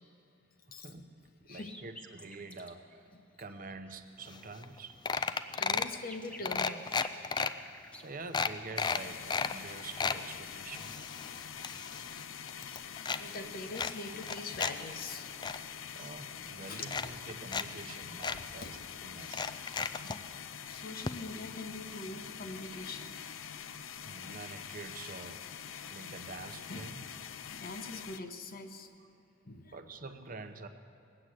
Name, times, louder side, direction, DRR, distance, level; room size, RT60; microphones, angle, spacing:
voice 1, 0.7-3.1 3.4-5.0 8.0-11.2 12.6-12.7 15.6-20.2 23.6-27.1 29.7-30.7, right 3 dB, 40° right, 8 dB, 0.8 m, -47 dB
sound 1, 1.5-2.8 3.1-3.2 3.5-4.0 4.2-8.1 10.3-11.1 11.3-11.8, left 1 dB, 5° left, 0.8 m, -53 dB
sound 2, 4.3-4.4 4.6-4.8 5.1-6.0 6.4-7.5 8.0-8.1 8.3-9.5 9.8-10.2 10.7-12.2 12.5-13.2 13.7-14.7 15.1-15.6 16.4-16.5 16.9-17.6 17.9-18.0 18.2-18.4 19.2-20.2 21.1-21.2 21.4-21.5, left 5 dB, 20° left, 0.3 m, -33 dB
voice 2, 5.6-7.0 7.2-7.5 13.2-15.4 16.7-16.9 18.6-18.7 20.0-20.3 20.7-23.1 26.7-26.9 27.5-28.9 29.5-29.7, left 3 dB, 45° left, 7 dB, 1.0 m, -43 dB
sound 3, 8.8-28.2, left 8 dB, 75° left, 0.6 m, -45 dB
20.0 x 8.7 x 7.8 m, 2.8 s
head